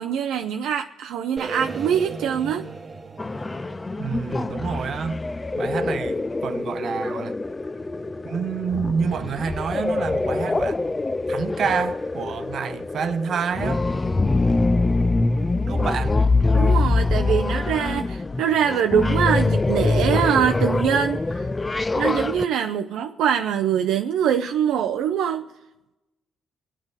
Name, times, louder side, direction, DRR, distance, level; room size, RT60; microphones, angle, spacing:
voice 1, 0.0-2.7 16.5-21.2 21.9-25.5, right 8 dB, 85° right, 0.5 m, -23 dB
sound 1, 1.4-5.4, right 4 dB, 40° right, 1.1 m, -37 dB
sound 2, 3.2-22.4, left 3 dB, 20° left, 0.4 m, -24 dB
voice 2, 4.0-5.2 5.6-7.4 8.2-10.8 11.3-13.9 15.7-16.2, right 6 dB, 60° right, 0.9 m, -28 dB
26.0 x 9.1 x 4.0 m
cardioid pair, 90°, 0 cm